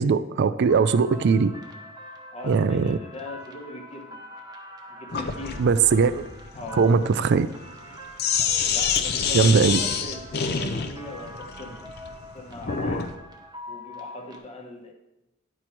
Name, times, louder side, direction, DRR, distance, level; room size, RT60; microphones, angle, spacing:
voice 1, 0.0-1.5 2.4-3.0 5.6-6.2 6.7-7.5 9.3-9.8, right 5 dB, 55° right, 14 dB, 0.4 m, -20 dB
sound 1, 0.7-14.4, left 1 dB, 20° right, 0.9 m, -44 dB
voice 2, 2.3-4.2 4.9-5.7 6.5-6.9 8.7-11.9 12.3-13.1 13.7-14.9, left 1 dB, 30° left, 2 dB, 1.0 m, -40 dB
Sink (filling or washing), 5.1-13.1, left 6 dB, 55° left, 0.6 m, -28 dB
10.0 x 4.4 x 4.5 m, 0.94 s
head